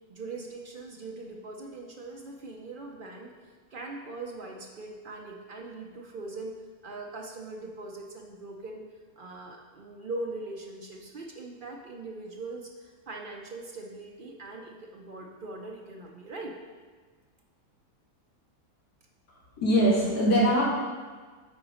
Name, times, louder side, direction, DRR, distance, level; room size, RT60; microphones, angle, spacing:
voice 1, 0.1-6.5 6.8-8.8 9.2-16.5, right 2 dB, 70° right, 0 dB, 0.5 m, -41 dB
voice 2, 19.3-20.6, equal, 85° left, -7 dB, 2.7 m, -23 dB
9.1 x 3.9 x 4.9 m, 1.4 s
omnidirectional pair, 1.7 m